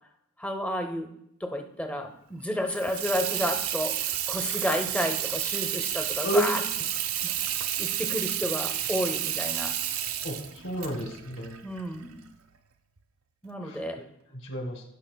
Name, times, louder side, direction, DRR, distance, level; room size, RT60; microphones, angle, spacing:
voice 1, 0.4-1.1 1.4-6.6 7.2-7.3 7.8-9.8 11.6-12.2 13.4-14.0, equal, 5° left, 5 dB, 0.6 m, -31 dB
Water tap faucet / Sink (filling or washing), 2.7-12.3, right 11 dB, 75° right, 0.6 m, -31 dB
voice 2, 6.2-6.7 10.2-10.4 10.6-11.6 13.6-13.8 14.4-14.8, equal, 65° left, 2 dB, 1.9 m, -30 dB
16.0 x 5.7 x 2.2 m, 0.77 s
head